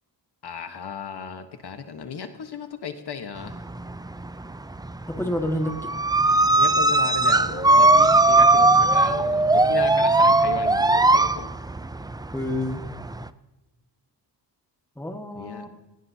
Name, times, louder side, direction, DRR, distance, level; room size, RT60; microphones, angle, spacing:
voice 1, 0.4-3.6 6.6-11.5 15.3-15.6, left 6 dB, 65° left, 7 dB, 1.3 m, -35 dB
sound 1, 3.4-4.4 4.7-13.3, right 2 dB, 10° right, 0.4 m, -19 dB
voice 2, 5.1-5.9 12.3-12.8 15.0-15.7, left 1 dB, 5° left, 4 dB, 1.7 m, -28 dB
18.0 x 17.5 x 2.8 m, 1.1 s
wide cardioid pair, 100°, 42 cm